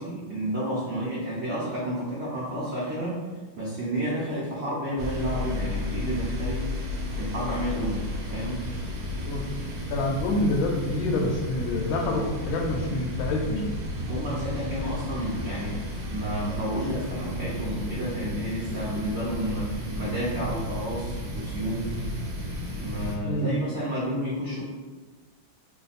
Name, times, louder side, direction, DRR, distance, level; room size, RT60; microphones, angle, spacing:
voice 1, 0.0-3.2 3.6-6.7 7.0-8.7 14.1-21.9 22.8-24.6, equal, 80° right, -8 dB, 0.6 m, -31 dB
sound 1, 5.0-23.2, left 1 dB, 65° right, 0.9 m, -33 dB
voice 2, 9.9-13.8 23.2-23.6, left 1 dB, 80° left, 2 dB, 1.4 m, -27 dB
3.2 x 2.2 x 4.0 m, 1.3 s
omnidirectional pair, 2.2 m